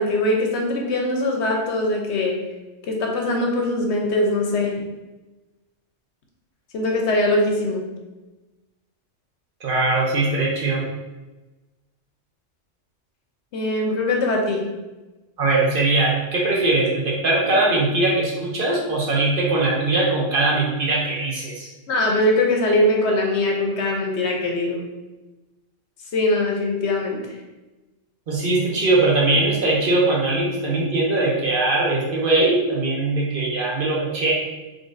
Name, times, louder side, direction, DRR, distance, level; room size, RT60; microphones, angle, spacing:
voice 1, 0.0-2.4 2.9-4.8 6.7-7.8 13.5-14.6 21.9-24.9 26.1-27.2, left 1 dB, 70° left, 1 dB, 0.9 m, -21 dB
voice 2, 9.6-10.9 15.4-21.7 28.3-34.3, right 2 dB, 50° right, -3 dB, 0.8 m, -21 dB
3.9 x 3.1 x 2.5 m, 1.1 s
omnidirectional pair, 1.3 m